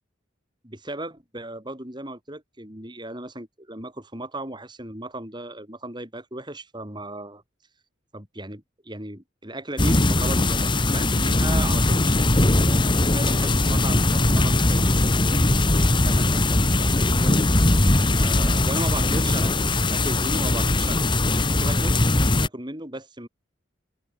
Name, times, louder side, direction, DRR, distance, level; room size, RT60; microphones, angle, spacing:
voice 1, 0.6-7.4 8.1-10.7 10.9-17.4 18.2-19.5 19.9-21.1 21.5-21.9 22.4-23.3, right 1 dB, 20° right, 5.6 m, -36 dB
sound 1, 9.8-22.5, left 2 dB, 25° left, 1.4 m, -20 dB
open air
head